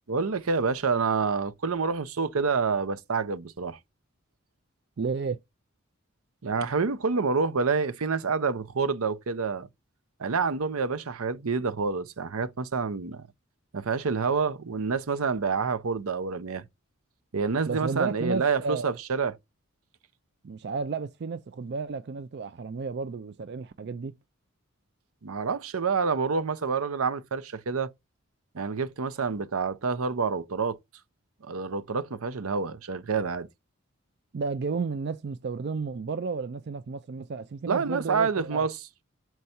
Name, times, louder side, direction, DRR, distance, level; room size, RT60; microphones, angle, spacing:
voice 1, 0.1-3.8 6.4-9.7 10.2-13.3 13.7-16.6 17.3-19.4 25.2-27.9 28.5-30.8 31.4-33.5 37.7-38.8, right 5 dB, 80° right, 0.7 m, -28 dB
voice 2, 5.0-5.4 17.7-18.9 20.4-24.1 34.3-38.7, right 4 dB, 50° right, 0.4 m, -32 dB
6.5 x 4.6 x 4.3 m
head